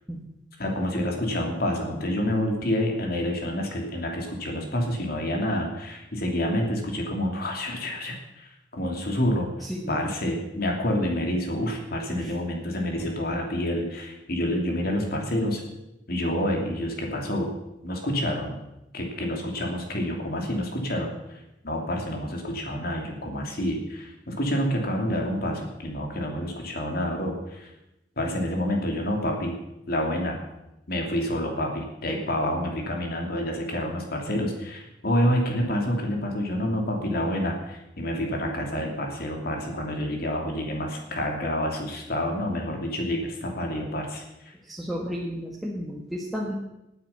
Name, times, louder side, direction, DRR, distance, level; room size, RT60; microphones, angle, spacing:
voice 1, 0.6-9.5 9.9-15.6 16.1-17.6 17.8-18.6 18.9-27.7 28.2-29.6 29.9-30.4 30.9-44.5, equal, 55° left, 1 dB, 2.9 m, -28 dB
voice 2, 9.6-10.0 12.2-12.3 44.6-46.5, equal, ahead, -3 dB, 1.6 m, -33 dB
18.0 x 9.3 x 5.7 m, 0.91 s
head